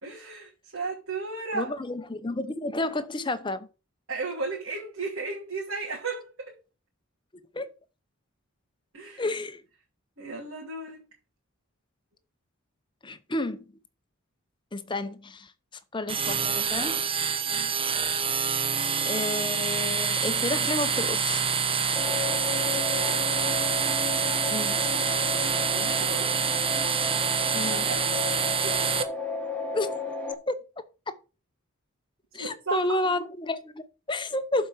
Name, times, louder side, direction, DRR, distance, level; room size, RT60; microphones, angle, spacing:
voice 1, 0.0-1.7 4.1-6.5 8.9-9.2 10.2-11.0 17.4-17.7 22.8-23.3 25.7-26.3 27.7-28.3 28.6-29.1 32.4-33.2, right 3 dB, 70° right, 3.0 m, -35 dB
voice 2, 1.5-3.7 7.5-7.7 9.2-9.6 13.0-13.7 14.7-15.5 15.9-17.0 19.0-21.4 24.5-24.9 27.5-27.9 29.7-30.0 30.5-30.6 32.3-34.7, left 2 dB, 20° left, 0.7 m, -31 dB
sound 1, 16.1-29.0, right 6 dB, 25° right, 0.9 m, -26 dB
sound 2, 22.0-30.3, left 3 dB, 5° left, 1.3 m, -34 dB
7.3 x 4.9 x 7.2 m
head